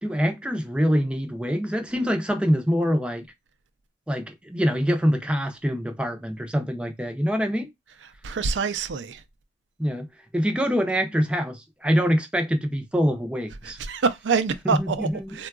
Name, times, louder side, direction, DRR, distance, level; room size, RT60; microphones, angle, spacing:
voice 1, 0.0-3.3 4.1-7.7 9.8-10.1 10.3-13.8 14.6-15.3, equal, 5° right, 0.5 m, -24 dB
voice 2, 8.2-9.2 13.6-15.1 15.3-15.5, right 5 dB, 90° right, 0.4 m, -26 dB
3.7 x 2.3 x 2.3 m
head